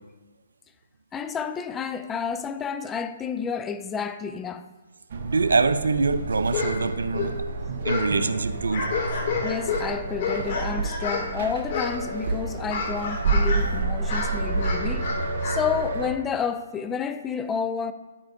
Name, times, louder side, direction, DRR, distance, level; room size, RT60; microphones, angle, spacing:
voice 1, 1.1-4.7 9.4-15.1 15.4-17.9, left 6 dB, 15° left, 0.4 m, -30 dB
sound 1, 5.1-16.1, right 3 dB, 50° right, 1.1 m, -29 dB
voice 2, 5.2-7.4 7.8-8.9, right 4 dB, 80° right, 0.7 m, -24 dB
sound 2, 6.5-6.8 7.0-8.2 8.5-11.3 11.7-12.2 12.5-13.7 14.0-15.6, left 4 dB, 45° left, 2.4 m, -29 dB
10.5 x 8.8 x 2.7 m
hypercardioid pair, 145°, 0 cm